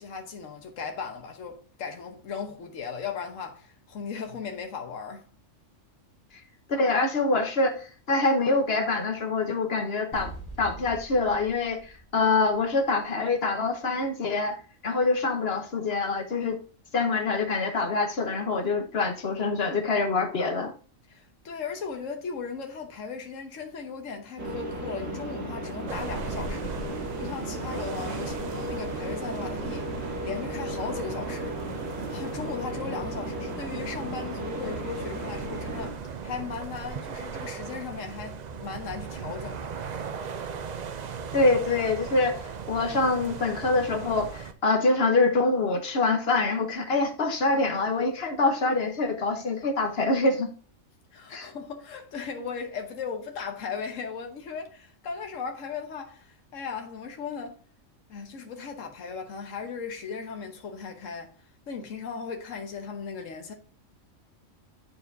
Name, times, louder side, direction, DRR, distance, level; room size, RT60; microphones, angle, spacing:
voice 1, 0.0-5.3 21.1-26.7 27.2-31.5 32.1-39.7 51.1-57.6 58.1-61.3 61.7-63.5, left 5 dB, 75° left, 1.4 m, -37 dB
voice 2, 6.7-10.3 10.6-14.6 14.8-16.6 16.9-20.7 41.3-42.3 42.7-50.5 51.3-51.5, left 3 dB, 55° left, 1.2 m, -25 dB
sound 1, 10.1-13.1, right 2 dB, 30° left, 1.3 m, -44 dB
sound 2, 24.4-35.9, right 1 dB, 85° right, 2.2 m, -35 dB
sound 3, 25.9-44.5, right 6 dB, 55° right, 0.4 m, -38 dB
9.9 x 4.6 x 2.6 m
omnidirectional pair, 1.3 m